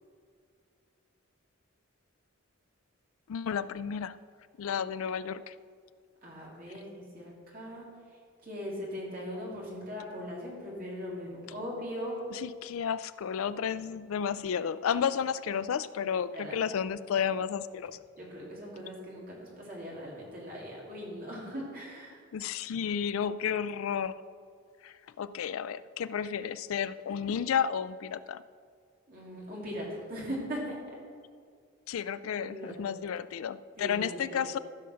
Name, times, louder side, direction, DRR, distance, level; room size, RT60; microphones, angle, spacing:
voice 1, 3.3-4.2 4.6-5.5 12.3-18.0 22.3-24.1 24.8-28.4 31.9-34.6, left 7 dB, 80° left, 16 dB, 0.4 m, -32 dB
voice 2, 6.2-7.8 8.4-12.2 16.3-16.6 18.2-22.2 29.1-30.8 32.2-32.8 33.8-34.4, equal, 40° right, -4 dB, 3.0 m, -40 dB
14.0 x 5.7 x 6.4 m, 2.2 s
head